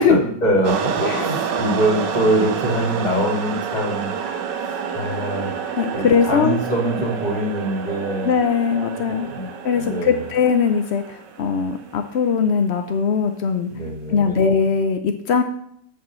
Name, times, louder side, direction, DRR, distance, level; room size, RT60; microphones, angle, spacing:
voice 1, 0.0-4.1 4.6-5.5 5.8-8.3 9.0-9.5 9.7-10.3 13.7-14.5, right 1 dB, 25° left, 0 dB, 2.2 m, -24 dB
sound 1, 0.6-12.2, right 7 dB, 80° right, 1.5 m, -28 dB
voice 2, 5.8-6.6 8.2-9.3 9.6-11.0 11.4-13.7 14.1-15.4, left 6 dB, 65° left, 7 dB, 0.6 m, -20 dB
7.2 x 5.5 x 7.5 m, 0.70 s
omnidirectional pair, 1.9 m